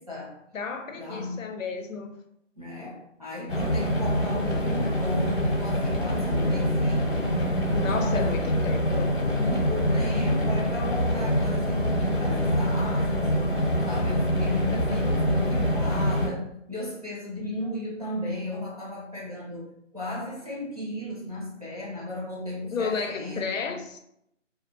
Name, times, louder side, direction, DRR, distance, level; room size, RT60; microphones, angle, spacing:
voice 1, 0.0-0.4 0.9-1.4 2.5-7.4 7.7-8.5 9.3-13.6 13.8-19.7 19.9-23.8, left 1 dB, 30° right, -8 dB, 0.6 m, -35 dB
voice 2, 0.5-2.1 7.7-9.2 22.7-24.0, left 5 dB, 90° left, 6 dB, 0.6 m, -32 dB
sound 1, 3.5-16.3, equal, 60° left, 0.9 m, -25 dB
2.4 x 2.1 x 2.9 m, 0.76 s
figure-of-eight pair, 175°, 38 cm